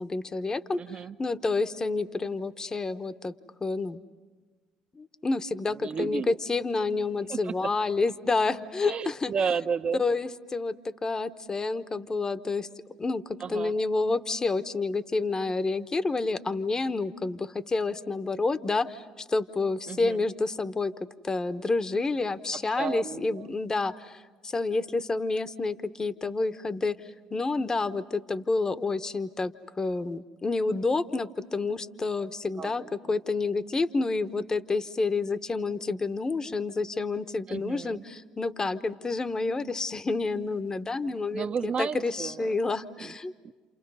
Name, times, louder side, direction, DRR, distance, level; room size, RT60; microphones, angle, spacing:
voice 1, 0.0-0.8 1.2-3.3 3.6-4.0 4.9-9.3 10.0-12.7 13.0-20.9 21.2-43.3, left 3 dB, 25° left, 11 dB, 1.0 m, -29 dB
voice 2, 0.8-1.2 5.7-6.3 7.3-7.5 8.8-10.0 13.4-13.7 19.9-20.2 22.6-23.5 32.6-33.1 37.5-38.0 41.3-42.6 43.0-43.1 43.4-43.5, right 6 dB, 45° right, 10 dB, 0.9 m, -33 dB
30.0 x 28.0 x 5.6 m, 1.3 s
supercardioid pair, 75°, 3 cm